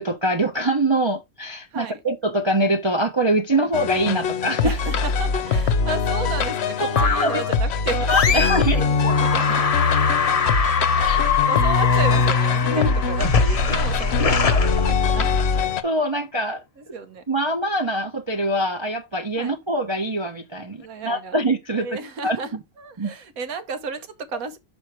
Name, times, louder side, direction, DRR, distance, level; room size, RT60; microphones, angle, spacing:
voice 1, 0.0-4.8 6.8-7.4 7.9-8.8 11.0-11.2 12.7-12.9 15.8-16.6 17.3-21.9 22.2-22.4 23.0-23.1, right 1 dB, 25° right, 0.6 m, -23 dB
voice 2, 1.7-2.0 3.5-3.7 4.6-9.6 10.8-15.4 16.8-17.2 19.4-19.6 20.7-21.4 21.8-24.6, right 4 dB, 90° right, 1.5 m, -34 dB
sound 1, 3.7-15.8, left 5 dB, 55° left, 0.9 m, -22 dB
sound 2, 7.0-7.5 8.1-8.7 9.0-15.5, left 5 dB, 40° left, 0.5 m, -23 dB
6.3 x 5.0 x 4.4 m
omnidirectional pair, 1.4 m